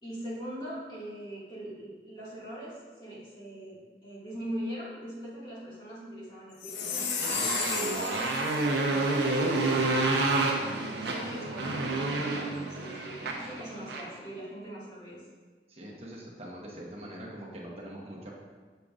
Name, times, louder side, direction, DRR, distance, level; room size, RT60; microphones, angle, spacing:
voice 1, 0.0-7.1 7.4-15.2, right 1 dB, 25° left, -8 dB, 1.9 m, -41 dB
Chime, 6.6-8.6, left 7 dB, 80° left, 0.5 m, -33 dB
Motorcycle, 6.8-14.2, right 2 dB, 75° right, 0.8 m, -29 dB
voice 2, 15.7-18.3, right 1 dB, 35° right, -4 dB, 1.1 m, -43 dB
6.7 x 6.6 x 2.5 m, 1.4 s
head